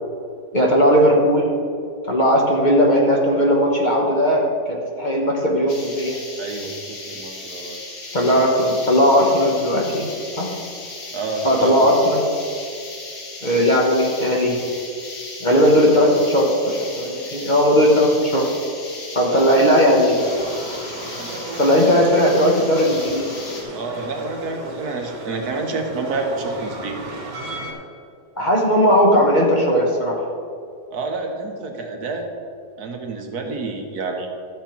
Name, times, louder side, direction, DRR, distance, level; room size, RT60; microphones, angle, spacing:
voice 1, 0.5-1.4 2.1-6.2 8.1-10.1 10.4-10.5 11.4-12.2 13.4-14.6 15.4-18.5 19.1-20.2 21.6-23.2 28.4-30.3, equal, 30° left, -2 dB, 1.2 m, -17 dB
sound 1, 5.7-23.6, left 3 dB, 75° left, 2.1 m, -36 dB
voice 2, 6.4-7.8 11.1-11.9 12.3-12.5 19.3-19.7 21.2-21.9 23.7-27.0 30.9-32.3 32.8-34.3, right 3 dB, 70° right, 3 dB, 1.5 m, -29 dB
sound 2, 20.2-27.7, right 1 dB, 85° right, 2.6 m, -35 dB
13.0 x 6.9 x 4.5 m, 2.5 s
omnidirectional pair, 1.8 m